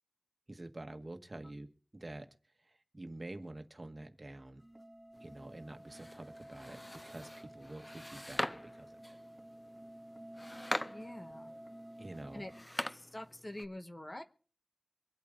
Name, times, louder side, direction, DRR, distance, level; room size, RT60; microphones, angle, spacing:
voice 1, 0.5-1.7 1.9-2.3 2.9-4.6 5.2-9.2 12.0-12.5, right 2 dB, 45° right, 6 dB, 1.5 m, -47 dB
sound 1, 4.6-12.6, right 1 dB, 25° right, 3.7 m, -52 dB
sound 2, 5.1-13.7, left 1 dB, 20° left, 0.5 m, -44 dB
voice 2, 10.9-11.5 12.3-12.5 12.9-14.2, left 1 dB, 35° left, 7 dB, 1.3 m, -46 dB
24.5 x 8.4 x 3.8 m, 0.40 s
wide cardioid pair, 50°, 0 cm